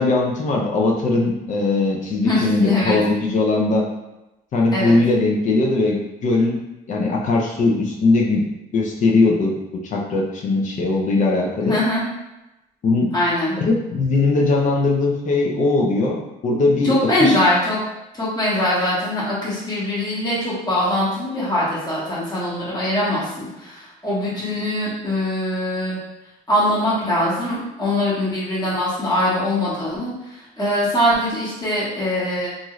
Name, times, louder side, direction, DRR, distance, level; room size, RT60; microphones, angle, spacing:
voice 1, 0.0-3.9 4.5-6.6 6.9-8.4 8.7-11.8 12.8-13.1 13.6-17.4, left 3 dB, 45° left, -1 dB, 0.6 m, -20 dB
voice 2, 2.2-3.0 4.7-5.0 11.6-12.0 13.1-13.6 16.8-17.8 18.1-26.0 26.5-32.5, left 1 dB, 25° left, -9 dB, 1.2 m, -22 dB
2.6 x 2.4 x 3.0 m, 0.95 s
cardioid pair, 110°, 17 cm